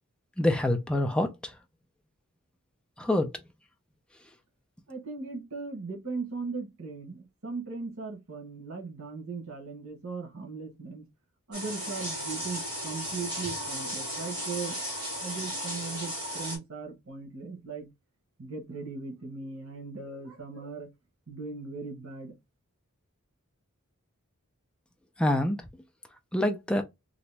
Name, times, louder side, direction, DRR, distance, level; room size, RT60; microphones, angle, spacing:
voice 1, 0.4-1.3 3.0-3.3 25.2-25.6 26.3-26.8, left 1 dB, 5° left, 0.5 m, -25 dB
voice 2, 4.9-11.0 11.5-14.8 15.2-17.9 18.4-20.9 21.3-22.3, right 4 dB, 70° right, 1.1 m, -38 dB
sound 1, 11.5-16.6, equal, 20° right, 1.7 m, -35 dB
2.9 x 2.6 x 3.3 m
head